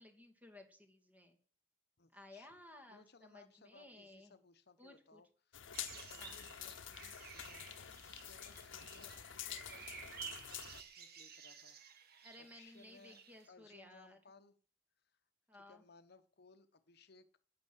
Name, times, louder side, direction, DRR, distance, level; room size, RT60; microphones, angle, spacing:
voice 1, 0.0-1.4 2.1-4.3 4.8-5.2 6.2-6.4 12.2-14.2 15.5-15.8, left 1 dB, 10° right, 5 dB, 2.5 m, -58 dB
voice 2, 2.0-2.5 2.9-7.7 8.1-12.0 12.4-13.2 13.5-14.6 15.0-15.2 15.5-17.3, left 4 dB, 60° left, 10 dB, 1.0 m, -64 dB
sound 1, 5.5-10.8, left 10 dB, 90° left, 0.9 m, -48 dB
sound 2, 5.7-13.5, right 8 dB, 55° right, 1.8 m, -53 dB
11.5 x 9.6 x 8.1 m, 0.43 s
head